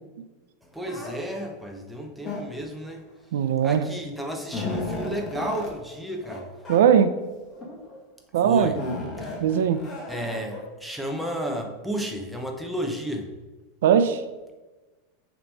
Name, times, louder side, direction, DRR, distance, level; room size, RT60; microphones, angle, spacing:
voice 1, 0.7-3.0 3.6-6.5 8.4-8.8 9.2-9.3 10.1-13.3, equal, ahead, 2 dB, 0.6 m, -32 dB
sound 1, 0.8-1.1 2.2-2.8 3.7-3.8 4.2-5.7 6.2-6.4 6.6-6.8 7.5-7.9 8.8-10.6, left 2 dB, 15° left, 1.2 m, -34 dB
voice 2, 3.3-3.9 6.7-7.1 8.3-8.7 9.4-9.9 13.8-14.2, right 8 dB, 75° right, 11 dB, 0.5 m, -19 dB
6.6 x 3.0 x 5.3 m, 1.2 s
supercardioid pair, 170°, 0 cm